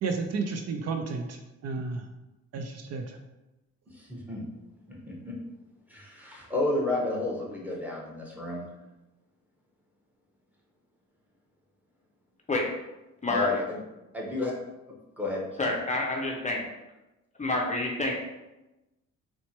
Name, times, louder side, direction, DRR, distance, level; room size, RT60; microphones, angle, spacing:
voice 1, 0.0-2.1 2.5-3.2, right 4 dB, 55° right, 4 dB, 0.4 m, -32 dB
voice 2, 3.9-4.4 4.9-5.3 5.9-8.7 13.2-13.8 14.1-14.5 15.2-15.7, left 2 dB, 5° right, -4 dB, 0.9 m, -31 dB
voice 3, 15.6-16.6 17.4-18.1, left 2 dB, 25° left, 0 dB, 0.5 m, -28 dB
4.2 x 2.1 x 2.9 m, 1.0 s
cardioid pair, 90°, 30 cm